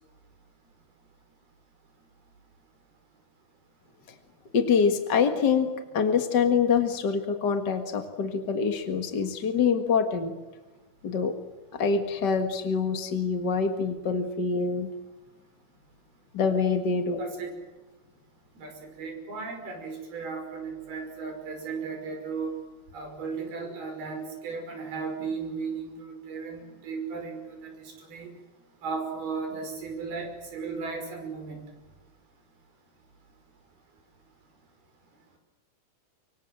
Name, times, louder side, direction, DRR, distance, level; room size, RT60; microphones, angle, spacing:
voice 1, 4.5-5.7 5.9-10.3 11.0-11.4 11.7-14.9 16.3-17.2, left 6 dB, 50° left, 6 dB, 1.2 m, -25 dB
voice 2, 17.2-17.6 18.6-22.5 22.9-28.3 28.8-31.7, right 4 dB, 75° right, 4 dB, 7.4 m, -35 dB
25.5 x 23.5 x 7.8 m, 1.1 s
omnidirectional pair, 4.5 m